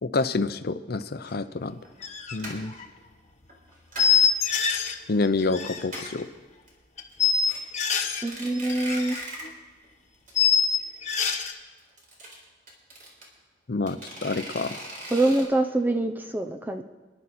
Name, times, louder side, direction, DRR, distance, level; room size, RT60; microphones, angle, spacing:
voice 1, 0.0-1.8 2.3-2.7 5.1-6.3 13.7-14.9, left 3 dB, 60° left, 11 dB, 0.7 m, -28 dB
sound 1, 1.2-1.3 1.8-2.0 2.4-2.8 3.5-4.3 4.6-5.2 5.5-5.6 5.8-6.3 6.7-6.8 7.1-7.6 8.1-9.6 9.8-9.9 10.3-10.4 10.6-10.7 11.8-13.2 13.9-15.4, right 1 dB, 50° right, 4.1 m, -39 dB
sound 2, 2.0-2.4 2.6-2.9 4.0-5.0 5.2-6.1 7.0-8.2 8.5-9.2 9.4-9.5 10.3-11.5, left 7 dB, 40° left, 1.2 m, -24 dB
voice 2, 8.2-9.2 15.1-16.8, right 2 dB, 10° right, 5 dB, 0.6 m, -25 dB
27.0 x 11.0 x 4.3 m, 1.3 s
head